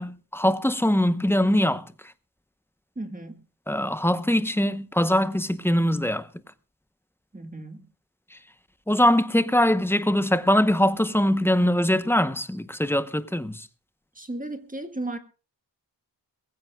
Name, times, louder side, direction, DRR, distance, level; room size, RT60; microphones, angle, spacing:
voice 1, 0.0-1.9 3.7-6.3 8.3-8.4 8.9-13.7, left 1 dB, 5° left, 0.8 m, -22 dB
voice 2, 3.0-3.4 7.3-7.9 14.2-15.2, right 2 dB, 20° right, 1.7 m, -35 dB
23.0 x 15.5 x 2.3 m
wide cardioid pair, 85°, 41 cm